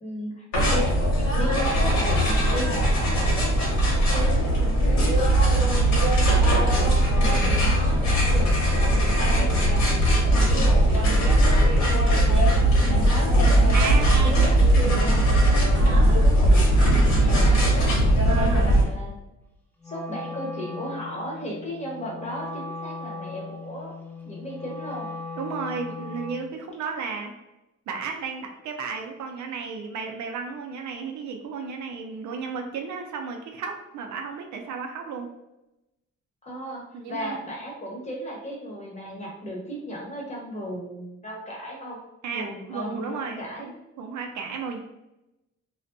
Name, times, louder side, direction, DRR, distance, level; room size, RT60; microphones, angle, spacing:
voice 1, 0.0-4.6 5.1-10.0 10.4-12.1 12.9-15.3 15.7-18.0 18.5-19.1 19.8-23.9 24.2-25.1 36.4-42.0 42.3-43.7, equal, 20° left, -3 dB, 0.9 m, -35 dB
sound 1, 0.5-18.8, right 1 dB, 65° left, 1.1 m, -19 dB
voice 2, 13.7-14.6 15.8-16.3 18.2-18.7 25.4-27.3 27.9-35.3 36.9-37.4 42.2-43.7 44.0-44.8, right 5 dB, 70° right, 2 dB, 0.5 m, -33 dB
Wind instrument woodwind instrument, 19.8-26.5, left 3 dB, 5° left, 0.5 m, -38 dB
2.5 x 2.2 x 2.5 m, 0.90 s
cardioid pair, 90°, 30 cm